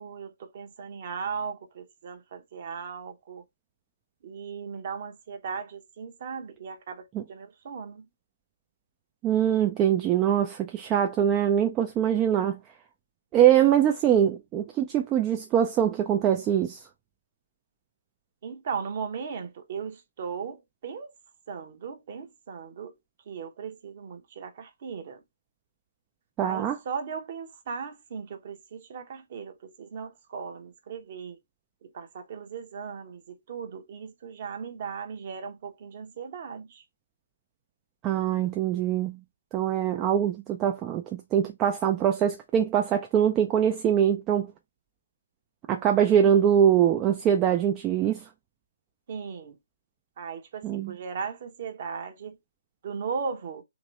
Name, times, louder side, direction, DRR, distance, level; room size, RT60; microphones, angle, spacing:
voice 1, 0.0-3.4 4.2-8.0 18.4-21.1 21.5-22.9 23.3-25.2 26.4-31.4 31.8-36.8 49.1-49.6 50.2-52.4 52.8-53.6, right 6 dB, 40° right, 0.9 m, -37 dB
voice 2, 9.2-12.6 13.3-16.8 26.4-26.8 38.0-39.2 39.5-44.5 45.7-48.2 50.6-50.9, right 9 dB, 20° right, 0.4 m, -23 dB
3.0 x 2.9 x 3.9 m
figure-of-eight pair, 140°, 0 cm